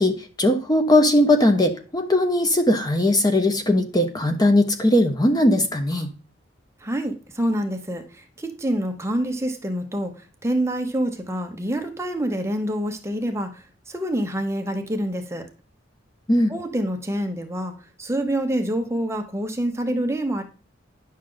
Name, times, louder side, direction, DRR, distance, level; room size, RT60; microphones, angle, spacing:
voice 1, 0.0-6.1 16.3-16.5, left 1 dB, 20° left, 6 dB, 0.8 m, -19 dB
voice 2, 6.8-15.5 16.5-17.7 18.0-20.4, right 1 dB, 15° right, 4 dB, 0.9 m, -26 dB
9.9 x 6.4 x 3.8 m, 0.37 s
head